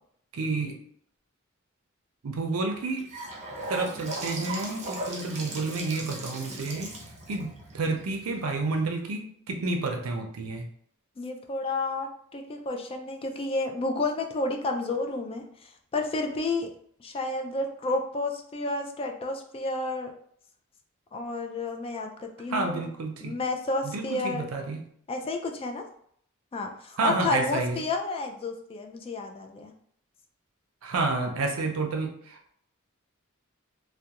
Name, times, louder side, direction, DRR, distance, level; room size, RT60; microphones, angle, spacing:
voice 1, 0.3-0.8 2.2-3.1 3.7-6.9 7.3-10.6 22.5-23.4 23.8-24.8 27.0-27.8 30.8-32.5, right 3 dB, 85° right, 4 dB, 0.5 m, -30 dB
Gurgling / Sink (filling or washing) / Bathtub (filling or washing), 2.7-8.8, right 1 dB, 35° right, 0.6 m, -38 dB
voice 2, 11.2-16.7 17.0-20.1 21.1-22.9 23.2-24.5 25.1-25.9 26.5-29.7, left 2 dB, 25° left, 3 dB, 0.3 m, -31 dB
2.3 x 2.2 x 2.8 m, 0.64 s
head